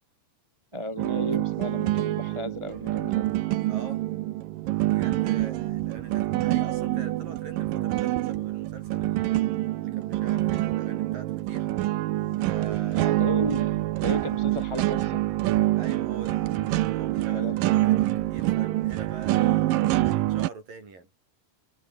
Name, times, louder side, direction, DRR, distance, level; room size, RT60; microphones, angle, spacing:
voice 1, 0.7-3.2 12.9-15.2 17.3-17.8, equal, 10° right, 2.0 m, -34 dB
sound 1, 1.0-20.5, right 16 dB, 90° right, 2.0 m, -26 dB
voice 2, 3.7-4.1 4.8-11.7 12.5-13.1 15.8-16.5 16.8-17.5 17.8-19.7 20.3-21.1, right 4 dB, 50° right, 9.5 m, -44 dB
omnidirectional pair, 5.2 m